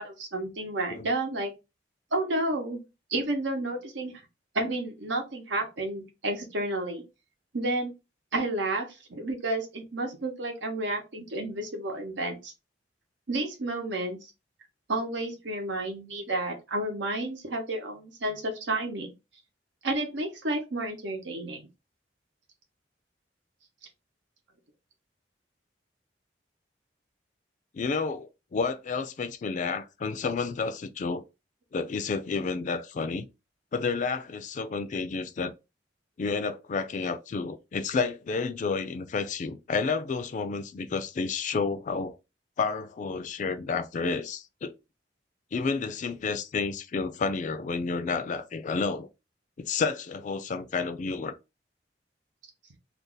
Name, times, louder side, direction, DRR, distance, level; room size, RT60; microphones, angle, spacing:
voice 1, 0.0-1.5 2.1-2.8 3.1-4.1 4.5-7.0 7.5-7.9 8.3-12.5 13.3-14.2 14.9-19.1 19.8-21.7, right 2 dB, 90° right, 0.9 m, -31 dB
voice 2, 27.7-31.2 31.7-33.3 33.7-35.5 36.2-42.1 42.6-44.7 45.5-49.1 49.6-51.3, left 4 dB, 45° left, 0.4 m, -30 dB
2.6 x 2.4 x 3.8 m
head